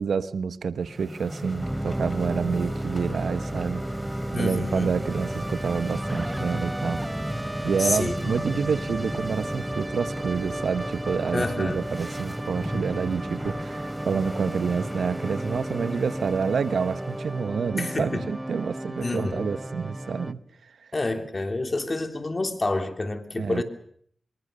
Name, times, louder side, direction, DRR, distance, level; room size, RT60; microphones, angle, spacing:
voice 1, 0.0-3.8 4.3-7.0 7.6-20.4 23.4-23.6, right 6 dB, 80° right, 13 dB, 1.1 m, -28 dB
sound 1, 0.8-17.4, equal, ahead, 3.0 m, -36 dB
sound 2, 1.6-20.3, right 1 dB, 15° right, 1.0 m, -34 dB
voice 2, 4.3-5.0 7.8-8.2 11.3-11.8 17.8-18.2 19.0-19.5 20.9-23.6, left 2 dB, 35° left, 7 dB, 3.3 m, -28 dB
25.0 x 23.0 x 6.8 m, 0.63 s
cardioid pair, 55°, 0 cm